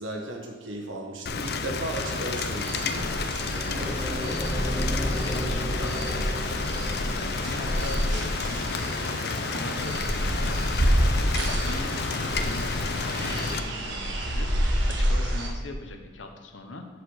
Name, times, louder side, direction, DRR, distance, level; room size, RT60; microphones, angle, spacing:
voice 1, 0.0-4.4, right 2 dB, 90° right, 1 dB, 1.5 m, -36 dB
Rain, 1.3-13.6, left 4 dB, 55° left, 0.5 m, -31 dB
sound 1, 2.0-15.5, equal, 70° right, 1.2 m, -29 dB
sound 2, 3.8-7.7, equal, 15° right, 1.3 m, -34 dB
voice 2, 4.2-12.7 13.2-14.1 14.3-16.9, left 2 dB, 80° left, 5 dB, 1.0 m, -41 dB
8.0 x 4.9 x 6.5 m, 1.4 s
head